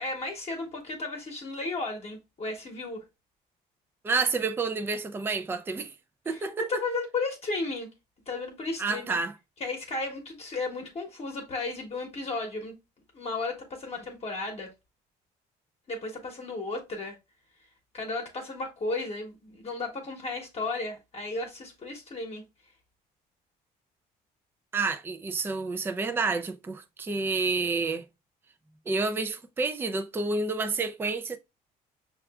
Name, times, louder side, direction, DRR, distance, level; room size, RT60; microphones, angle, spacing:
voice 1, 0.0-3.0 6.3-7.9 8.3-9.2 9.6-12.7 13.1-14.7 15.9-17.2 17.9-22.4, left 3 dB, 35° left, 1.0 m, -34 dB
voice 2, 4.0-5.9 6.3-6.6 8.8-9.3 24.7-28.1 28.9-31.4, right 4 dB, 15° right, 0.3 m, -29 dB
5.6 x 2.4 x 2.3 m
cardioid pair, 110°, 17 cm